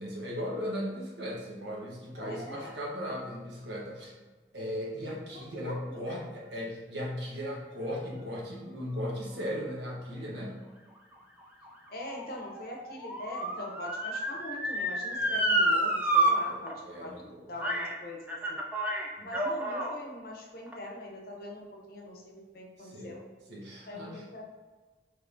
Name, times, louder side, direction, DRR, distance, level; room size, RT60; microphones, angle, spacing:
voice 1, 0.0-4.1 4.5-10.6 15.1-15.4 16.4-17.5 19.2-19.3 22.8-23.2 23.5-24.3, equal, 85° right, -3 dB, 0.9 m, -37 dB
voice 2, 2.1-2.8 5.6-6.3 11.9-18.6 19.2-21.6 21.9-23.2 23.9-24.4, left 1 dB, 55° left, 0 dB, 0.6 m, -42 dB
Motor vehicle (road) / Siren, 11.1-16.3 16.7-16.8 17.6-17.9 18.3-20.0 20.7-20.8, right 1 dB, 10° right, 0.3 m, -29 dB
3.5 x 3.0 x 2.5 m, 1.3 s
head